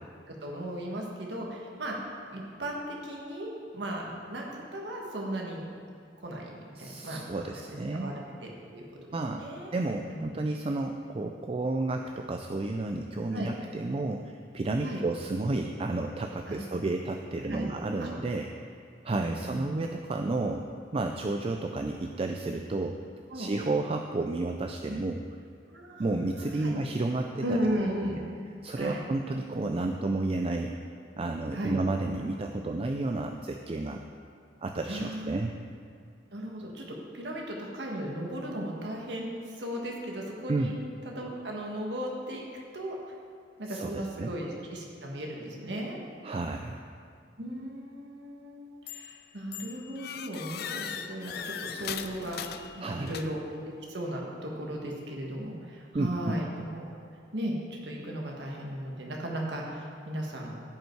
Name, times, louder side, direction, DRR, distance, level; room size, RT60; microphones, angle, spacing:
voice 1, 0.3-2.0 2.3-5.7 6.2-7.2 7.9-9.7 10.1-10.3 13.3-13.5 14.8-15.0 16.5-16.6 17.5-17.7 18.0-18.1 19.3-19.8 23.3-23.5 25.7-26.8 27.4-28.2 28.8-29.0 31.5-31.8 34.9-35.5 36.3-40.7 41.0-42.4 42.7-42.9 43.6-46.0 47.4-52.4 52.7-53.4 53.6-56.8 57.3-60.5, right 1 dB, 75° right, -1 dB, 1.5 m, -36 dB
voice 2, 6.8-8.1 9.1-9.5 9.7-18.5 19.0-20.6 20.9-23.0 23.3-25.3 26.0-27.6 28.1-28.2 28.6-30.7 31.2-34.0 34.6-35.6 40.5-40.7 43.7-44.3 46.2-46.8 52.8-53.1 55.9-56.4, right 2 dB, 30° right, 4 dB, 0.4 m, -31 dB
sound 1, 48.9-49.2 49.5-53.6, left 8 dB, 60° left, 0.5 m, -39 dB
15.5 x 5.4 x 4.6 m, 2.2 s
head